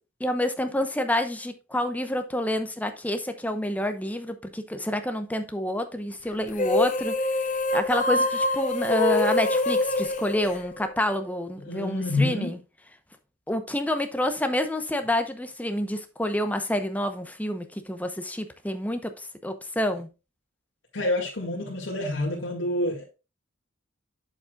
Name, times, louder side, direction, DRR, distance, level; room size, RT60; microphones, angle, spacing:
voice 1, 0.2-7.1 7.7-12.6 13.5-20.1, left 1 dB, 10° left, 0.8 m, -28 dB
sound 1, 6.5-11.2, left 2 dB, 40° left, 0.8 m, -25 dB
voice 2, 11.7-12.5 20.9-23.1, left 2 dB, 80° left, 2.1 m, -27 dB
8.4 x 7.2 x 2.4 m
head